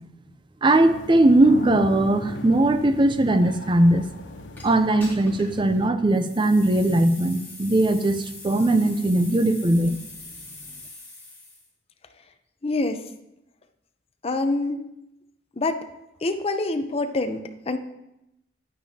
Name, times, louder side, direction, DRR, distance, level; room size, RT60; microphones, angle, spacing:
voice 1, 0.6-4.0 4.6-10.0, right 1 dB, 25° right, 10 dB, 0.5 m, -19 dB
sound 1, 0.7-5.9, left 2 dB, 70° left, 0.8 m, -37 dB
sound 2, 4.6-4.7 5.0-5.6 6.1-11.7, left 2 dB, 10° left, 3.1 m, -42 dB
voice 2, 12.6-13.0 14.2-14.8 15.6-15.8 16.2-17.8, left 2 dB, 30° left, 7 dB, 0.6 m, -26 dB
10.5 x 9.0 x 2.8 m, 0.88 s
head